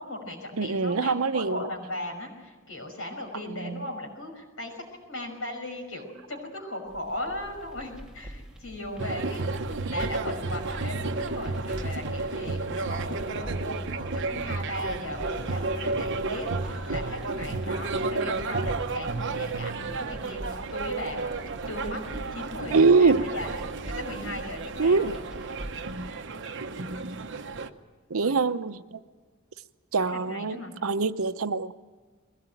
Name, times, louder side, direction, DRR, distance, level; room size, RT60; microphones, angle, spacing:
voice 1, 0.0-9.4 9.9-23.5 23.8-25.2 28.2-28.4 30.1-30.8, left 1 dB, 75° left, 2 dB, 5.9 m, -37 dB
voice 2, 0.6-1.7 3.3-3.8 22.7-23.2 24.8-25.1 28.1-29.0 29.9-31.7, right 4 dB, 85° right, 12 dB, 0.8 m, -24 dB
sound 1, 6.9-26.1, right 1 dB, 5° right, 1.8 m, -44 dB
sound 2, 9.0-27.7, right 3 dB, 60° right, 1.0 m, -32 dB
21.5 x 18.0 x 9.1 m, 1.4 s
head